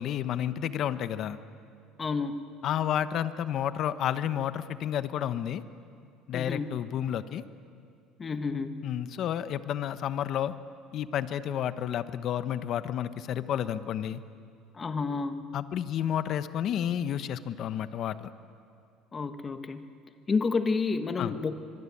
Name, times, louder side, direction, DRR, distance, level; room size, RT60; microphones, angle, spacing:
voice 1, 0.0-1.4 2.6-5.6 6.3-7.4 8.8-10.5 10.9-14.2 15.5-18.3 21.2-21.4, left 10 dB, 50° left, 12 dB, 1.1 m, -31 dB
voice 2, 2.0-2.4 6.3-6.7 8.2-8.8 14.7-15.5 19.1-19.8 20.3-21.5, left 4 dB, 25° left, 9 dB, 1.3 m, -30 dB
24.5 x 24.0 x 9.9 m, 2.4 s
cardioid pair, 140°, 0 cm